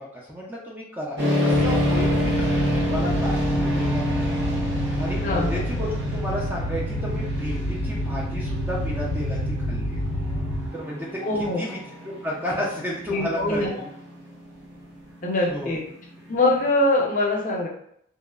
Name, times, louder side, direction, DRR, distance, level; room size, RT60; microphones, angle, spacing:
voice 1, 0.0-4.4 4.8-9.4 9.7-10.0 10.7-11.2 11.6-11.8 12.0-13.9 15.5-15.8, equal, 10° right, -4 dB, 0.4 m, -32 dB
sound 1, 1.2-16.7, equal, 65° right, 0.8 m, -29 dB
sound 2, 1.5-10.7, left 1 dB, 90° left, 0.4 m, -28 dB
voice 2, 5.2-5.6 11.2-11.6 13.1-13.7 15.2-15.8 16.3-17.7, left 2 dB, 40° left, -2 dB, 0.6 m, -23 dB
2.8 x 2.0 x 2.3 m, 0.68 s
head